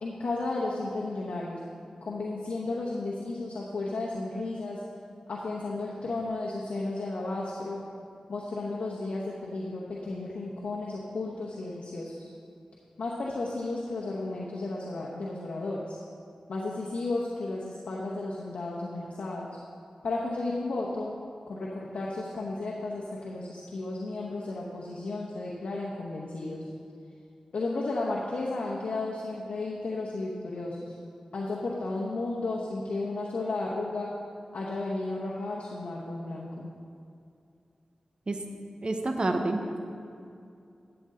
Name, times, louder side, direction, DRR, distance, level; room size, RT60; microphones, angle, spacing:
voice 1, 0.0-1.6 2.0-4.8 5.3-7.8 8.3-12.3 13.0-16.0 16.5-19.5 20.0-21.1 21.5-26.6 27.5-30.9 31.3-34.1 34.5-36.7, left 2 dB, 90° left, -4 dB, 0.9 m, -33 dB
voice 2, 38.8-39.8, right 2 dB, 50° right, 5 dB, 0.9 m, -28 dB
12.0 x 7.9 x 3.8 m, 2.5 s
cardioid pair, 60°, 2 cm